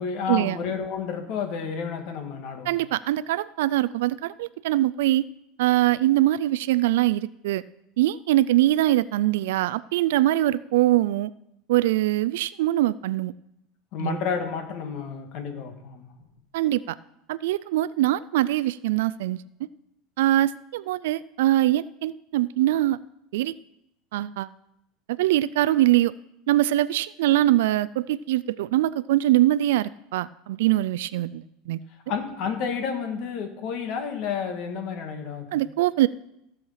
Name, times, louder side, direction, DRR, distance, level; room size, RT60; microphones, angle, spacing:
voice 1, 0.0-2.8 13.9-16.2 32.1-35.6, left 6 dB, 55° left, 6 dB, 1.9 m, -30 dB
voice 2, 2.7-5.3 5.6-7.6 8.0-11.3 11.7-13.3 14.0-14.2 16.5-17.0 17.3-19.4 20.2-23.0 23.3-23.5 24.1-24.5 25.1-26.1 26.5-31.8 35.5-36.1, right 15 dB, 85° right, 16 dB, 0.3 m, -23 dB
15.5 x 6.4 x 5.7 m, 0.82 s
supercardioid pair, 130°, 0 cm